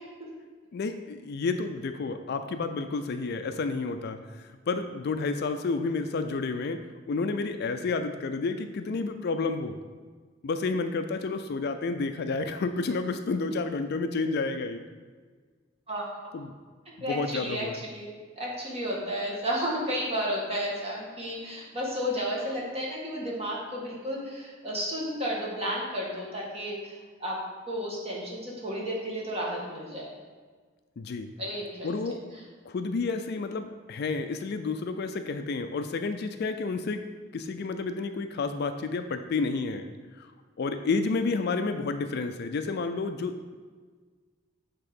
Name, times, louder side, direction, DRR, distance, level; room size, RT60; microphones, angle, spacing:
voice 1, 0.7-6.8 7.1-9.8 10.4-14.8 16.3-16.5 17.1-17.8 31.0-31.3 31.8-32.2 32.7-37.0 37.3-39.9 40.2-40.3 40.6-43.6, left 3 dB, 55° left, 8 dB, 0.4 m, -30 dB
voice 2, 15.9-16.3 17.0-18.1 18.4-26.9 27.2-27.4 27.7-30.1 31.4-31.9, equal, 30° right, -4 dB, 1.7 m, -32 dB
7.8 x 3.6 x 5.3 m, 1.5 s
head